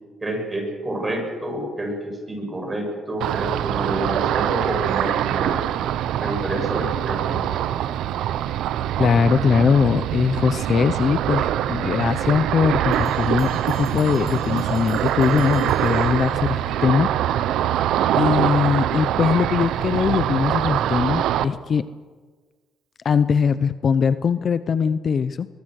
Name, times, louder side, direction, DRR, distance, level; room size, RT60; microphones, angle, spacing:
voice 1, 0.2-5.6 6.2-7.6, right 1 dB, 20° right, 2 dB, 7.1 m, -28 dB
Ocean, 3.2-21.5, right 11 dB, 80° right, 0.9 m, -23 dB
voice 2, 9.0-17.1 18.2-21.9 23.0-25.5, left 6 dB, 40° left, 13 dB, 0.7 m, -21 dB
Bell, 12.9-16.7, left 5 dB, 55° left, 7.1 m, -48 dB
22.5 x 22.5 x 6.5 m, 1.4 s
cardioid pair, 130°, 0 cm